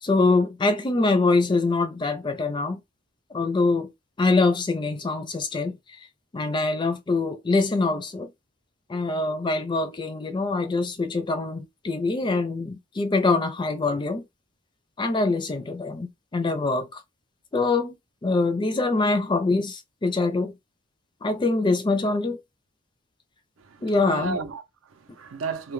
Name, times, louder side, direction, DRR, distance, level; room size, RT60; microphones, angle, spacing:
voice 1, 0.0-2.8 3.3-3.9 4.2-5.8 6.3-8.3 8.9-14.2 15.0-17.0 17.5-18.0 18.2-20.5 21.2-22.4 23.8-24.4, left 3 dB, 25° left, 0.4 m, -24 dB
voice 2, 23.6-25.7, right 4 dB, 85° right, 0.6 m, -34 dB
2.2 x 2.1 x 3.1 m
head